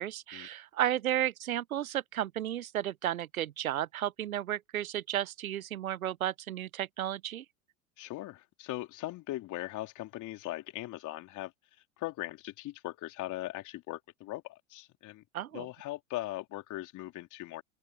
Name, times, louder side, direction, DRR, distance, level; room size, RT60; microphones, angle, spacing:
voice 1, 0.0-7.4 15.3-15.7, right 12 dB, 90° right, 0.7 m, -33 dB
voice 2, 8.0-11.5 12.0-15.2 15.5-17.6, left 16 dB, 45° left, 3.3 m, -39 dB
open air
hypercardioid pair, 85°, 41 cm